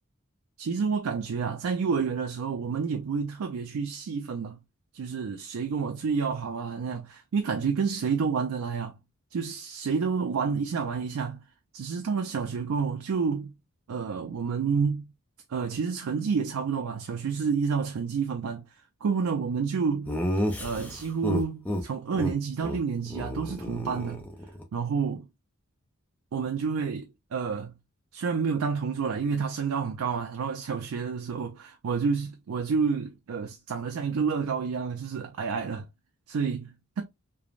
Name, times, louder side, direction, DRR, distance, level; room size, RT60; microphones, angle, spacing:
voice 1, 0.6-4.6 4.9-8.9 9.3-11.4 11.7-13.5 13.9-15.1 15.5-18.6 19.0-20.1 20.6-24.2 24.7-25.3 26.3-27.7 28.1-35.9 36.3-37.0, right 5 dB, 85° right, 0.4 m, -29 dB
Laughter, 20.1-21.8 22.1-22.3 22.6-22.8 23.1-24.6, equal, 5° left, 0.4 m, -31 dB
3.2 x 2.0 x 2.4 m
head